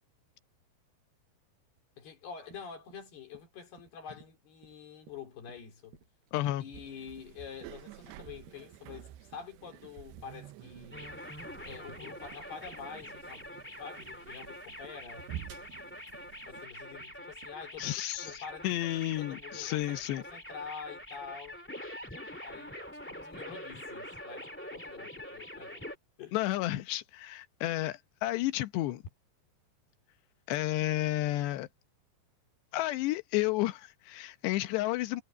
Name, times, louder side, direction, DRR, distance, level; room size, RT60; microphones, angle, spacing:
voice 1, 2.0-6.0 6.6-11.2 11.7-13.5 13.8-15.3 16.5-21.6 22.4-25.9 26.2-26.4, left 6 dB, 70° left, 5.8 m, -47 dB
sound 1, 2.2-20.4, right 5 dB, 70° right, 6.9 m, -60 dB
voice 2, 6.3-6.6 17.8-20.2 26.3-29.0 30.5-31.7 32.7-35.2, left 16 dB, 90° left, 3.2 m, -31 dB
sound 2, 6.7-16.7, right 12 dB, 90° right, 3.1 m, -49 dB
sound 3, 10.9-25.9, left 1 dB, 10° left, 0.6 m, -45 dB
omnidirectional pair, 4.8 m